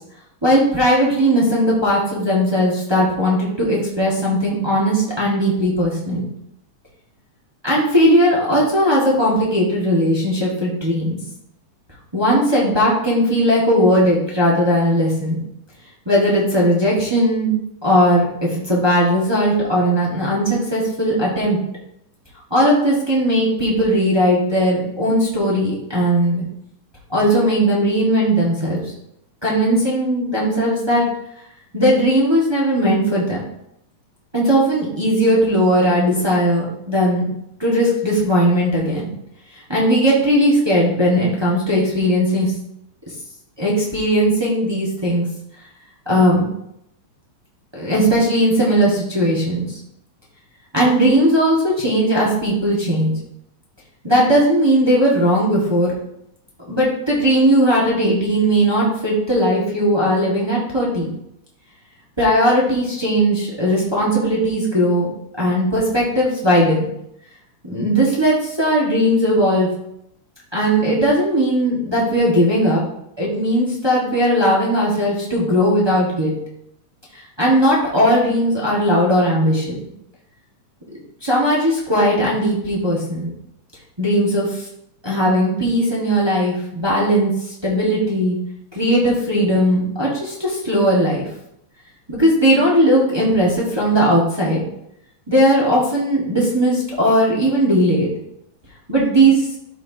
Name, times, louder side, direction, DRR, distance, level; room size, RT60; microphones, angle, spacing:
voice 1, 0.4-6.2 7.6-11.2 12.1-15.4 16.0-17.5 17.8-21.6 22.5-26.4 27.1-28.9 29.4-31.0 31.7-33.4 34.3-37.3 37.6-39.1 39.5-42.5 43.6-45.3 46.0-46.5 47.7-49.8 50.7-53.1 54.0-55.9 56.7-61.1 62.2-65.1 65.4-66.9 67.6-69.7 70.5-72.8 73.2-76.4 77.1-79.7 81.2-83.3 84.0-84.7 85.0-88.4 88.7-91.3 92.1-94.6 95.3-98.1 98.9-99.5, equal, 30° right, -5 dB, 0.4 m, -18 dB
13.0 x 4.4 x 2.8 m, 0.78 s
omnidirectional pair, 3.6 m